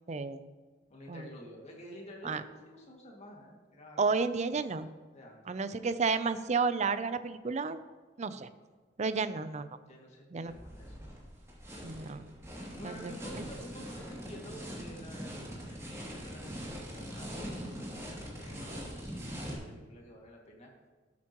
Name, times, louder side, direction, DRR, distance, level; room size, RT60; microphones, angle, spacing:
voice 1, 0.1-0.4 1.1-1.3 2.2-2.4 4.0-4.9 5.5-7.8 8.2-8.5 9.0-9.7 10.3-10.5 11.8-12.3 12.8-13.4, right 4 dB, 40° right, 12 dB, 0.5 m, -32 dB
voice 2, 0.9-4.1 4.5-4.8 5.1-5.4 8.3-8.5 9.3-9.4 9.9-10.9 12.7-20.7, left 1 dB, 35° left, -1 dB, 2.1 m, -51 dB
sound 1, 10.5-19.6, equal, 15° right, 2.5 m, -42 dB
13.0 x 8.3 x 3.0 m, 1.4 s
head